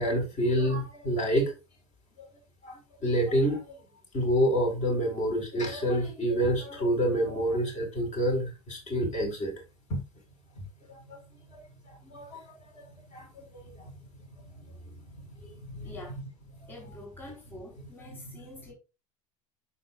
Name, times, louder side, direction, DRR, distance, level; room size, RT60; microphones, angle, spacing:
voice 1, 0.0-1.5 2.2-2.3 2.6-3.8 4.1-9.5 9.9-10.0 11.1-11.2 11.5-11.6 12.0-12.4 13.1-13.4 15.7-15.9 17.5-17.6 18.2-18.3, equal, 40° left, 4.6 m, -28 dB
voice 2, 15.8-16.2 16.7-18.7, left 1 dB, 10° left, 3.7 m, -46 dB
12.5 x 4.4 x 2.4 m
figure-of-eight pair, 70°, 18 cm